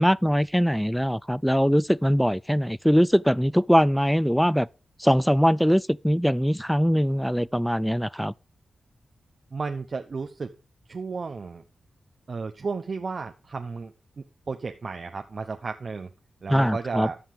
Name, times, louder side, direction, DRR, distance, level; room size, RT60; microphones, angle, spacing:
voice 1, 0.0-4.7 5.0-8.3 16.5-17.1, equal, ahead, 0.4 m, -22 dB
voice 2, 9.5-10.5 10.9-11.6 12.3-13.9 14.5-16.1 16.4-17.2, right 4 dB, 55° right, 0.9 m, -33 dB
13.0 x 5.8 x 5.0 m
supercardioid pair, 45°, 0 cm